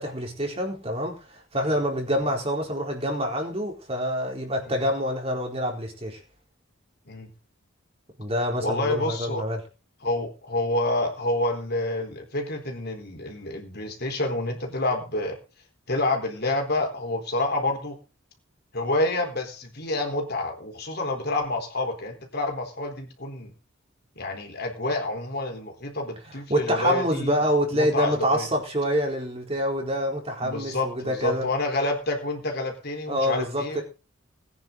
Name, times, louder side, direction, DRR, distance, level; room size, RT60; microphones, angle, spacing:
voice 1, 0.0-6.2 8.2-9.6 26.5-31.5 33.1-33.8, equal, 30° right, 1 dB, 4.1 m, -26 dB
voice 2, 8.6-9.4 10.0-15.3 15.9-18.0 18.7-23.5 24.2-27.3 27.7-28.5 30.4-33.8, left 2 dB, 50° left, 3 dB, 4.2 m, -28 dB
20.5 x 10.0 x 4.0 m, 0.32 s
head